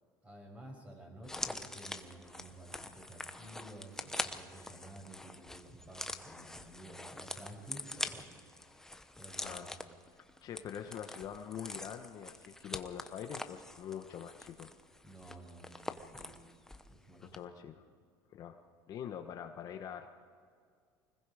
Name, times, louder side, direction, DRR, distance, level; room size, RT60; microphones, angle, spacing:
voice 1, 0.2-8.3 9.2-9.7 15.0-16.3 16.9-17.4, right 1 dB, 15° right, 0 dB, 6.1 m, -52 dB
sound 1, 1.2-16.9 17.2-17.4, left 2 dB, 5° left, 0.9 m, -44 dB
voice 2, 10.4-14.7 17.2-17.8 18.3-18.6 18.9-20.1, left 9 dB, 45° left, 5 dB, 1.2 m, -44 dB
25.0 x 20.5 x 5.0 m, 2.1 s
cardioid pair, 125°, 9 cm